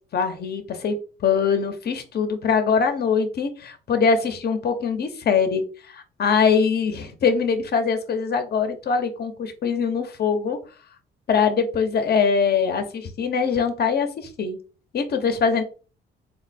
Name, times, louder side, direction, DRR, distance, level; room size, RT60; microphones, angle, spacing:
voice 1, 0.1-10.6 11.3-14.6 14.9-15.6, left 6 dB, 55° left, 7 dB, 0.9 m, -23 dB
4.1 x 2.1 x 4.1 m, 0.36 s
cardioid pair, 90°, 20 cm